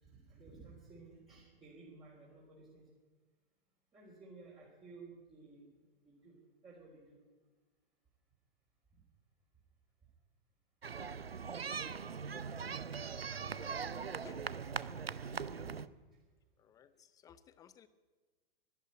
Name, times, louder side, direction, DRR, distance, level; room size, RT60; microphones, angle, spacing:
voice 1, 0.0-2.8 3.9-5.7 6.0-6.4 6.6-7.2 15.5-15.8, right 3 dB, 15° right, -4 dB, 3.7 m, -55 dB
sound 1, 10.8-15.9, right 6 dB, 85° right, 0.6 m, -41 dB
voice 2, 14.1-15.2 16.6-17.9, left 8 dB, 10° left, 15 dB, 0.6 m, -59 dB
12.5 x 12.0 x 9.8 m, 1.3 s
figure-of-eight pair, 110°, 29 cm